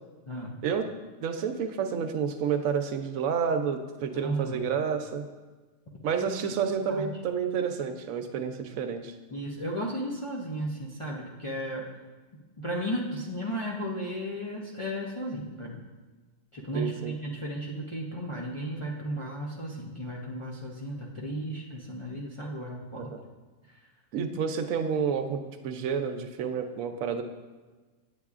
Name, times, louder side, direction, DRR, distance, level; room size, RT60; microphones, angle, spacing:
voice 1, 0.3-0.6 4.1-4.6 6.9-7.1 9.3-11.9 12.6-15.8 16.5-23.1 23.7-23.8, right 1 dB, 35° left, -3 dB, 0.5 m, -34 dB
voice 2, 1.2-5.3 6.0-9.1 16.7-17.1 23.0-23.2 24.1-27.2, right 6 dB, 80° right, 7 dB, 1.0 m, -30 dB
8.2 x 8.1 x 2.4 m, 1.3 s
omnidirectional pair, 1.4 m